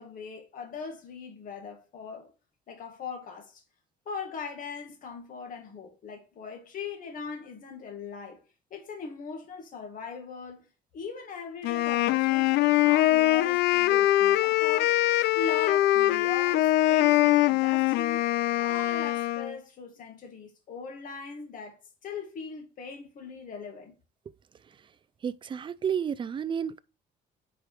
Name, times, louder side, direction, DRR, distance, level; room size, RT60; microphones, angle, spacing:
voice 1, 0.0-2.3 2.7-3.6 4.1-8.4 8.7-10.7 10.9-15.0 15.3-18.3 18.6-21.8 22.0-23.9, left 5 dB, 55° left, 2.1 m, -40 dB
Wind instrument woodwind instrument, 11.6-19.6, left 16 dB, 80° left, 0.4 m, -23 dB
voice 2, 25.2-26.8, right 7 dB, 30° right, 0.4 m, -31 dB
4.9 x 4.9 x 4.8 m
cardioid pair, 110°, 17 cm